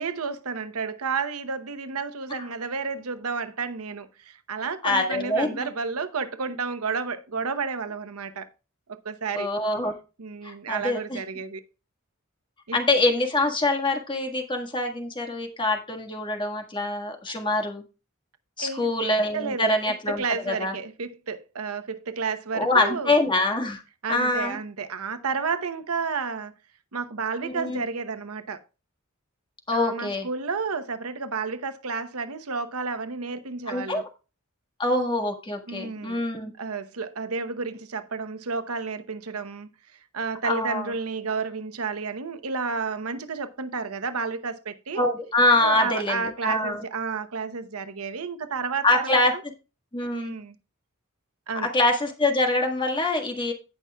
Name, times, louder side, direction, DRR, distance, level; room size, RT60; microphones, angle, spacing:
voice 1, 0.0-8.5 9.0-9.5 10.2-11.6 12.7-12.8 18.6-18.9 19.3-23.1 24.0-26.5 26.9-28.6 29.7-34.0 35.7-36.2 36.6-39.7 40.1-45.1 45.6-49.4 50.1-50.6 51.5-51.7, right 5 dB, 85° right, 0.9 m, -31 dB
voice 2, 4.8-5.7 9.3-9.9 10.4-11.2 12.7-17.8 18.6-20.7 22.5-23.8 24.1-24.6 27.4-27.8 29.7-30.3 33.7-34.0 34.8-36.5 40.4-40.9 45.0-46.8 48.8-49.3 49.9-50.3 51.7-53.5, left 2 dB, 25° left, 1.7 m, -25 dB
16.5 x 5.8 x 2.3 m
head